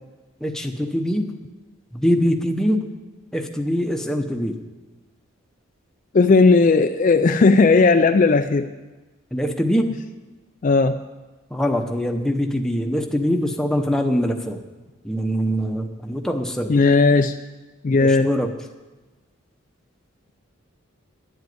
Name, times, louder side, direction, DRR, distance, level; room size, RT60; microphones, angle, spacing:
voice 1, 0.4-1.4 1.9-2.8 3.3-4.6 9.3-9.9 11.5-14.6 15.0-16.8 17.9-18.5, equal, 5° left, 4 dB, 0.8 m, -23 dB
voice 2, 6.1-8.7 10.6-11.0 16.7-17.4 17.8-18.3, left 3 dB, 40° left, 8 dB, 0.4 m, -16 dB
10.5 x 8.0 x 9.4 m, 1.2 s
head